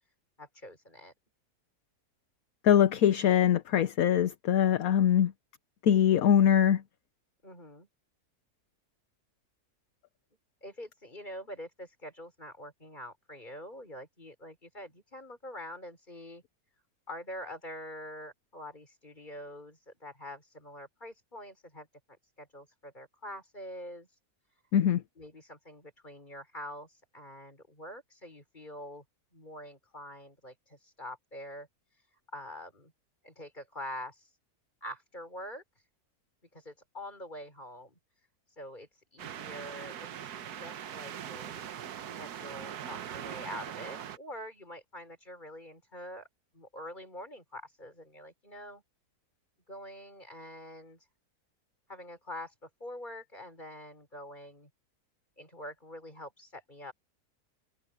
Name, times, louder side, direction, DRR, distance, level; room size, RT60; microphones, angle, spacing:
voice 1, 0.4-1.1 7.4-7.9 10.6-16.4 17.1-21.9 22.4-24.1 25.2-29.0 29.3-31.7 32.3-32.9 33.2-34.3 34.8-35.6 36.5-38.0 38.6-41.6 42.2-46.3 46.5-48.8 49.7-51.0 51.9-54.7 55.4-56.9, equal, 30° left, 5.3 m, -45 dB
voice 2, 2.6-5.3 5.8-6.8 24.7-25.0, left 9 dB, 65° left, 1.3 m, -23 dB
sound 1, 39.2-44.2, right 9 dB, 80° right, 1.5 m, -41 dB
omnidirectional pair, 1.7 m